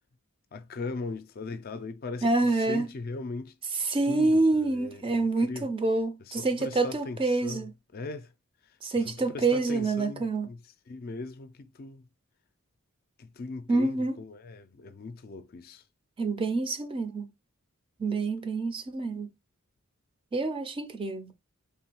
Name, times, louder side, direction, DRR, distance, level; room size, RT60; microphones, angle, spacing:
voice 1, 0.5-3.5 4.1-5.7 6.4-7.7 7.9-8.3 9.0-10.6 10.9-12.0 13.2-15.8, left 3 dB, 45° left, 0.4 m, -39 dB
voice 2, 2.2-2.9 3.7-7.7 8.8-10.5 13.7-14.2 16.2-17.3 18.0-19.3 20.3-21.3, right 3 dB, 25° right, 0.5 m, -27 dB
3.5 x 2.3 x 4.4 m
head